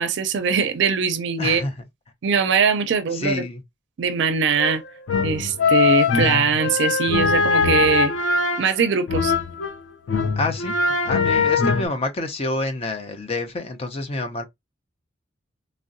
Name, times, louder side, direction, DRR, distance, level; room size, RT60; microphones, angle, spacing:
voice 1, 0.0-1.6 2.2-3.4 4.0-4.8 5.2-8.1 8.6-9.3 11.4-11.5, right 6 dB, 65° right, 0.4 m, -21 dB
voice 2, 1.4-1.7 3.1-3.6 10.4-10.7 11.0-14.4, left 2 dB, 35° left, 0.5 m, -27 dB
sound 1, 4.5-9.8 10.1-11.9, left 4 dB, 85° left, 0.5 m, -21 dB
3.6 x 2.1 x 2.5 m
head